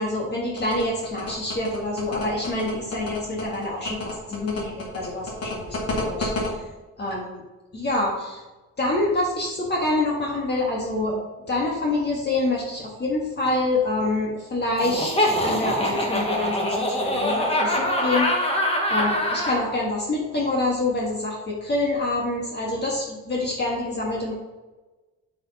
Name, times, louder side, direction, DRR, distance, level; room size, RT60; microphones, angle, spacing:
voice 1, 0.0-6.6 7.0-7.4 7.7-8.4 8.8-11.2 11.5-18.5 18.9-24.3, left 2 dB, 35° left, -3 dB, 1.7 m, -26 dB
sound 1, 0.6-6.5, left 3 dB, 55° left, 2.1 m, -30 dB
Laughter, 14.8-19.6, left 1 dB, 20° left, 1.7 m, -24 dB
7.7 x 4.8 x 4.2 m, 1.2 s
cardioid pair, 90°, 30 cm